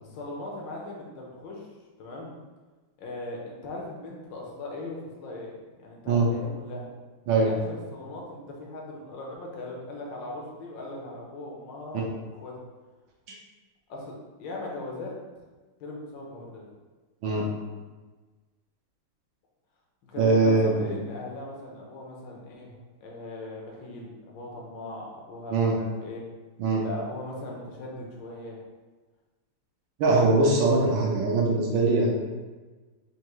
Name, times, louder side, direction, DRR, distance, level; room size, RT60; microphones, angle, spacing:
voice 1, 0.0-1.7 2.0-2.3 3.0-5.5 5.8-6.9 7.3-12.6 13.9-15.1 15.8-16.6 20.0-26.2 26.8-28.6 30.4-30.6, left 2 dB, 65° left, -2 dB, 1.3 m, -39 dB
voice 2, 20.2-20.9 25.5-25.7 26.6-26.8 30.0-32.1, right 3 dB, 70° right, -2 dB, 1.4 m, -22 dB
4.6 x 2.7 x 2.9 m, 1.3 s
omnidirectional pair, 2.4 m